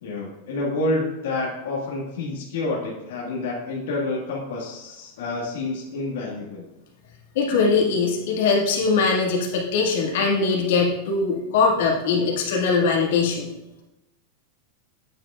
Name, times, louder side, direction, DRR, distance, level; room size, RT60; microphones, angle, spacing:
voice 1, 0.0-6.6, left 2 dB, 85° left, -3 dB, 1.7 m, -28 dB
voice 2, 7.4-13.5, left 4 dB, 70° left, -3 dB, 1.9 m, -21 dB
8.9 x 7.7 x 2.4 m, 0.98 s
supercardioid pair, 160°, 0 cm